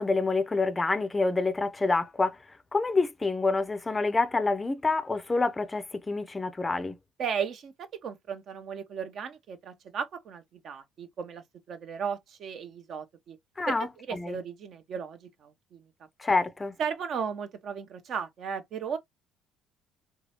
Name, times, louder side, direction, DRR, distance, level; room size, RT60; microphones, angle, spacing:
voice 1, 0.0-2.4 2.7-7.0 13.6-14.4 16.2-16.7, left 3 dB, 20° left, 0.5 m, -27 dB
voice 2, 7.2-13.4 13.7-15.8 16.8-19.0, right 7 dB, 50° right, 0.6 m, -35 dB
3.9 x 2.3 x 2.8 m
figure-of-eight pair, 50°, 0 cm